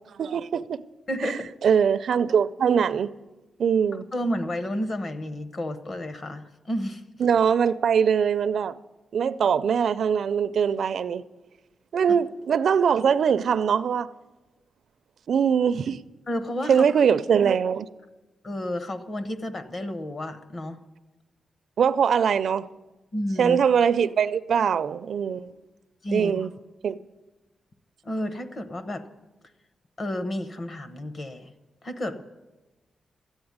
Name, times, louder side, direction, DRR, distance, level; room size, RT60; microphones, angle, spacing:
voice 1, 0.1-0.8 1.2-3.1 3.6-4.1 7.2-8.8 9.1-11.2 11.9-14.1 15.3-16.0 16.7-17.9 21.8-22.7 23.4-25.5 26.1-26.5 26.8-27.0, right 7 dB, 60° right, 0.4 m, -22 dB
voice 2, 1.1-1.5 4.1-7.0 12.1-12.2 16.3-16.8 18.4-20.8 23.1-23.6 26.0-26.5 28.0-29.0 30.0-31.5 31.8-32.2, left 1 dB, 35° left, 0.9 m, -31 dB
13.5 x 8.8 x 9.4 m
wide cardioid pair, 170°, 0 cm